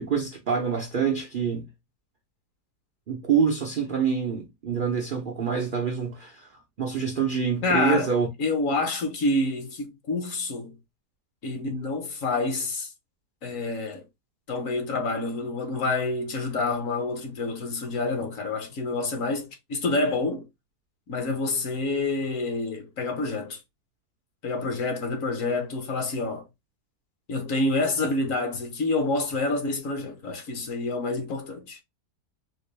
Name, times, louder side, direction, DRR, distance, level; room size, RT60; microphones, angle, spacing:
voice 1, 0.0-1.7 3.1-6.5 6.8-8.3, right 6 dB, 80° right, 0.4 m, -26 dB
voice 2, 7.6-8.1 8.4-10.8 11.4-12.9 13.4-14.0 14.5-20.4 21.1-23.6 24.4-26.4 27.3-31.8, left 2 dB, 60° left, 1.2 m, -28 dB
3.8 x 2.5 x 3.1 m
omnidirectional pair, 1.7 m